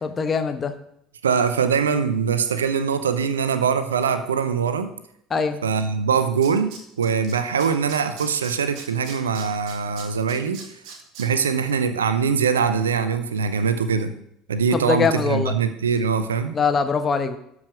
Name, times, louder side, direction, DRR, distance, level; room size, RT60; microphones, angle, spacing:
voice 1, 0.0-0.7 5.3-5.6 14.7-15.5 16.5-17.4, left 5 dB, 30° left, 8 dB, 1.0 m, -22 dB
voice 2, 1.2-4.9 5.6-10.6 11.2-14.2 14.5-16.6, right 6 dB, 75° right, 11 dB, 0.6 m, -22 dB
Tools, 5.8-5.9 6.1-7.3 7.6-11.3 11.6-11.7, right 6 dB, 55° right, 1.7 m, -40 dB
12.5 x 5.0 x 5.0 m, 0.74 s
figure-of-eight pair, 65°, 0 cm